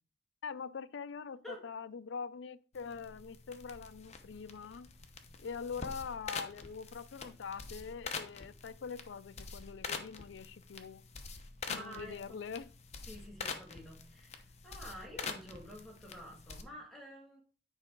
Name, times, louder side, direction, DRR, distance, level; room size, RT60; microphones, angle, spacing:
voice 1, 0.4-4.9 5.4-11.0 11.7-12.7, left 5 dB, 80° left, 0.5 m, -43 dB
sound 1, 2.7-16.6, left 5 dB, 35° left, 0.9 m, -46 dB
voice 2, 11.7-12.4 13.1-17.4, equal, ahead, 2.3 m, -49 dB
9.7 x 4.9 x 3.7 m
head